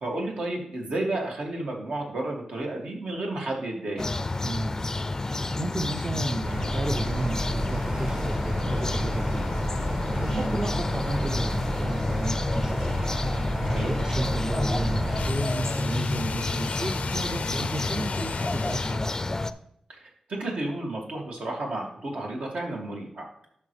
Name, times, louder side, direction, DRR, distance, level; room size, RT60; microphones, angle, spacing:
voice 1, 0.0-4.1 10.2-10.5 13.6-13.9 17.7-17.9 19.9-23.5, right 2 dB, 75° right, -1 dB, 2.4 m, -32 dB
sound 1, 4.0-19.5, left 2 dB, 25° left, 0.4 m, -30 dB
voice 2, 4.4-4.8 5.3-9.4 9.9-13.0 13.5-19.5, right 1 dB, 30° right, 5 dB, 0.6 m, -33 dB
sound 2, 6.4-15.3, equal, 55° right, 2.4 m, -30 dB
sound 3, 15.1-19.1, left 5 dB, 90° left, 0.4 m, -35 dB
11.0 x 6.1 x 3.3 m, 0.72 s
wide cardioid pair, 155°, 2 cm